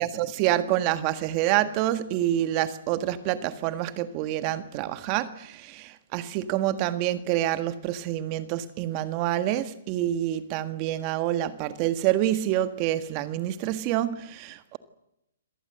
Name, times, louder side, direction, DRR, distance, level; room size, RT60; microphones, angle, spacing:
voice 1, 0.0-14.8, right 13 dB, 30° right, 1.7 m, -27 dB
26.5 x 18.5 x 7.9 m
hypercardioid pair, 150°, 0 cm